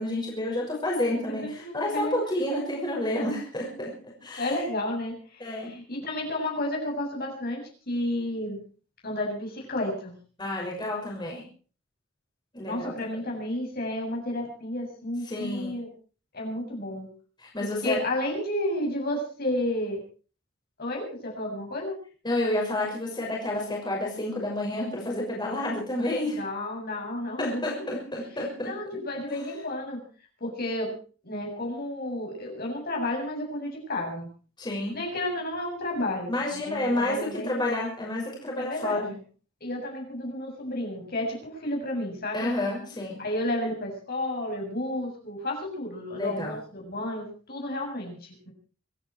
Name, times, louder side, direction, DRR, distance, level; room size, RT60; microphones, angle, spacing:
voice 1, 0.0-3.9 4.2-4.5 5.4-5.7 10.4-11.4 12.5-13.2 15.3-15.8 17.4-18.1 22.2-26.4 27.4-28.7 34.6-35.0 36.3-39.1 42.3-43.2 46.2-46.5, left 1 dB, 20° left, -2 dB, 6.1 m, -30 dB
voice 2, 1.3-2.1 4.3-8.6 9.0-10.1 12.6-15.9 16.3-17.1 17.6-20.0 20.8-22.0 26.4-28.1 28.6-30.0 30.4-31.0 31.2-34.3 34.9-37.6 38.6-39.2 39.6-42.5 43.2-48.5, left 1 dB, 50° left, 0 dB, 7.5 m, -32 dB
26.0 x 11.5 x 4.7 m, 0.40 s
head